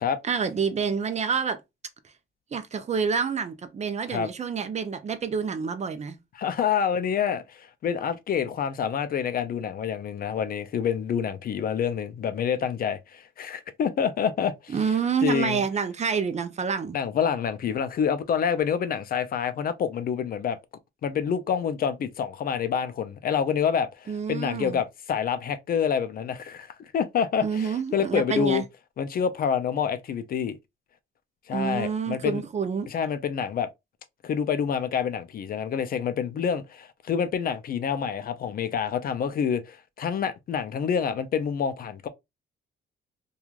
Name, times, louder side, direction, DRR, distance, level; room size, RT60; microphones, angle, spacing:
voice 1, 0.2-1.6 2.5-6.2 14.7-17.0 24.1-24.8 27.4-28.6 31.5-32.9, right 6 dB, 35° right, 0.5 m, -28 dB
voice 2, 6.4-14.8 15.2-15.6 16.9-20.6 21.0-28.6 29.0-30.6 31.5-32.4 32.9-33.7 34.2-42.1, left 7 dB, 50° left, 0.4 m, -27 dB
3.0 x 2.3 x 2.3 m
cardioid pair, 90°, 20 cm